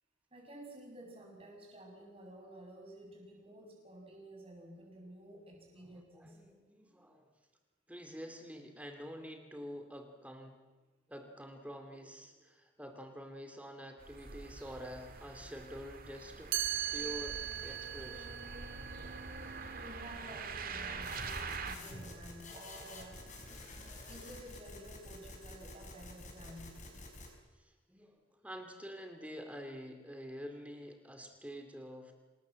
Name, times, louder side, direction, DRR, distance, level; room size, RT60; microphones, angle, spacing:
voice 1, 0.3-6.5 19.8-23.2 23.8-26.8, right 1 dB, 30° right, 0 dB, 7.6 m, -52 dB
voice 2, 6.1-7.3 7.9-10.6 11.1-16.5 16.9-18.5 27.6-32.1, equal, 5° right, 5 dB, 2.5 m, -47 dB
sound 1, 14.0-21.8, right 4 dB, 50° right, 2.0 m, -45 dB
Chime, 16.5-22.4, right 13 dB, 70° right, 0.7 m, -41 dB
sound 2, 21.0-27.3, left 2 dB, 40° left, 5.4 m, -49 dB
27.5 x 20.0 x 7.6 m, 1.2 s
head